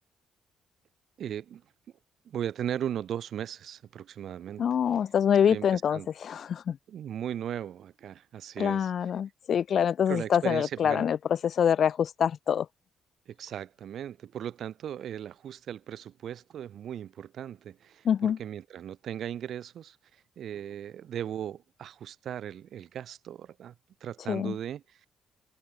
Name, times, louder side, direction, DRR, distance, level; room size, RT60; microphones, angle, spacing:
voice 1, 1.2-1.6 2.2-4.6 5.5-6.1 6.9-8.9 10.1-11.1 13.3-23.7 24.0-25.1, right 10 dB, 65° right, 5.0 m, -37 dB
voice 2, 4.6-6.8 8.6-11.2 11.4-12.7 18.0-18.4 24.3-24.5, left 8 dB, 60° left, 0.6 m, -25 dB
cardioid pair, 90°, 0 cm